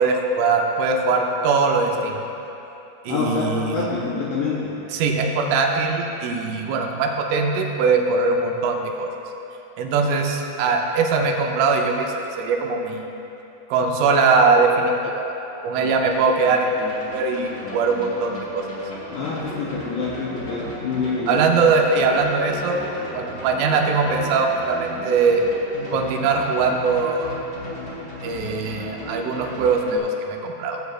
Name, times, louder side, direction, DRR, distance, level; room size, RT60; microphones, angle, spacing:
voice 1, 0.0-2.2 3.0-3.9 4.9-9.1 9.8-13.1 13.7-15.4 15.6-18.7 21.3-25.4 25.9-27.4 28.2-30.8, right 4 dB, 80° right, 1 dB, 3.1 m, -21 dB
voice 2, 3.1-4.8 19.1-21.4, left 4 dB, 90° left, -5 dB, 2.4 m, -26 dB
sound 1, 15.8-30.0, equal, 45° left, 1.1 m, -36 dB
16.5 x 7.9 x 2.4 m, 3.0 s
omnidirectional pair, 5.9 m